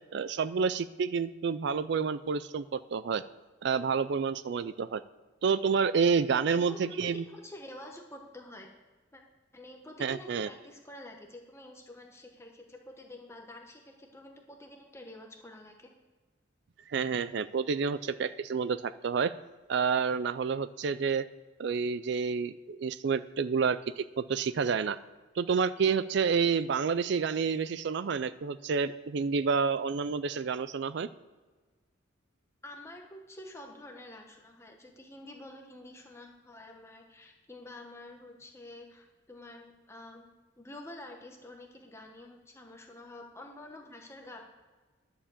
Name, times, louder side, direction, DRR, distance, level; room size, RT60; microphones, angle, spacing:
voice 1, 0.1-3.2 3.6-5.0 5.4-7.2 10.0-10.5 16.9-19.3 19.7-21.3 21.6-25.0 25.4-31.1, right 5 dB, 60° right, 14 dB, 0.4 m, -29 dB
voice 2, 6.5-8.7 9.1-9.2 9.5-15.9 32.6-40.3 40.6-44.4, left 1 dB, 15° left, 1 dB, 1.1 m, -48 dB
11.5 x 7.0 x 7.3 m, 1.3 s
head